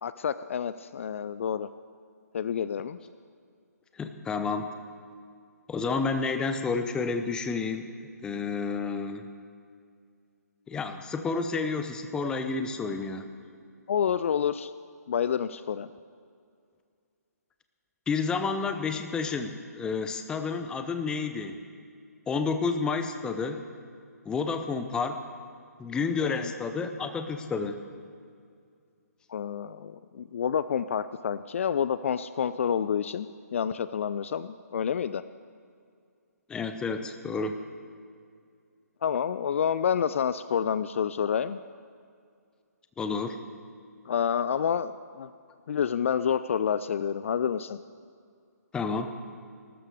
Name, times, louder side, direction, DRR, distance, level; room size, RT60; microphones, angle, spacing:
voice 1, 0.0-1.7 2.3-3.0 13.9-14.7 15.1-15.9 26.2-26.5 29.3-35.2 39.0-41.6 44.1-45.3 45.7-47.8, left 8 dB, 50° left, 14 dB, 0.4 m, -28 dB
voice 2, 4.0-4.7 5.7-9.3 10.7-13.3 18.1-21.6 22.3-23.6 24.2-25.2 25.8-27.8 36.5-37.6 43.0-43.4 48.7-49.2, left 4 dB, 10° left, 8 dB, 0.7 m, -30 dB
18.5 x 13.0 x 4.9 m, 2.3 s
figure-of-eight pair, 135°, 9 cm